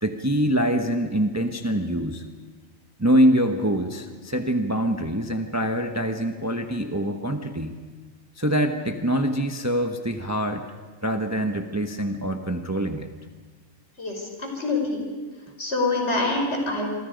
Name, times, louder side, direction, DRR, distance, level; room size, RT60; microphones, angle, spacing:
voice 1, 0.0-2.2 3.0-7.8 8.4-10.7 11.0-13.1, equal, 15° right, 5 dB, 1.0 m, -24 dB
voice 2, 14.0-15.0 15.6-16.9, left 2 dB, 55° left, 1 dB, 5.5 m, -25 dB
28.0 x 24.5 x 5.2 m, 1.4 s
omnidirectional pair, 1.4 m